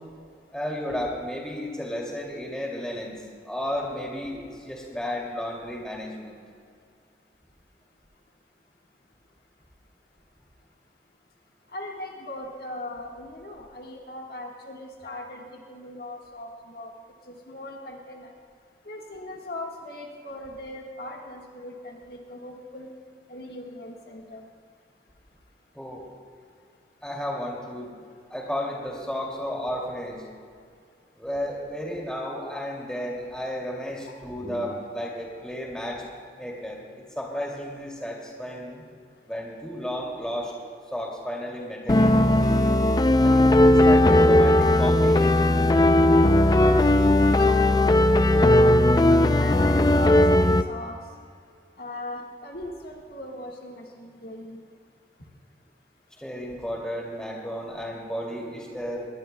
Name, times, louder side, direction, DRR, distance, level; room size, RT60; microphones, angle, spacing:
voice 1, 0.5-3.1 3.4-6.4 25.7-26.0 27.0-27.9 28.3-30.2 31.2-36.0 36.4-36.8 37.2-38.8 39.3-40.5 40.9-42.2 43.2-45.5 56.2-59.1, equal, 5° left, -3 dB, 2.4 m, -33 dB
voice 2, 11.7-16.9 17.3-18.3 18.8-22.9 23.3-24.4 34.1-34.2 34.7-35.1 35.4-35.5 47.4-48.0 48.3-48.9 49.3-51.0 51.8-54.6, left 1 dB, 60° left, 0 dB, 1.5 m, -39 dB
sound 1, 41.9-50.6, left 1 dB, 20° left, 0.4 m, -18 dB
21.5 x 18.5 x 2.2 m, 2.2 s
head